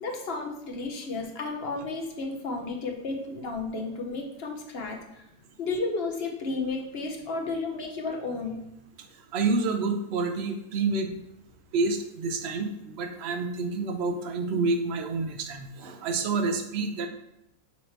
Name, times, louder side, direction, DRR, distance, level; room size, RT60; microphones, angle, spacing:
voice 1, 0.0-5.2 5.6-8.6, left 3 dB, 50° left, 2 dB, 0.9 m, -32 dB
voice 2, 9.3-11.1 11.7-17.1, right 3 dB, 60° right, 5 dB, 0.7 m, -28 dB
7.2 x 3.0 x 4.4 m, 0.83 s
omnidirectional pair, 1.7 m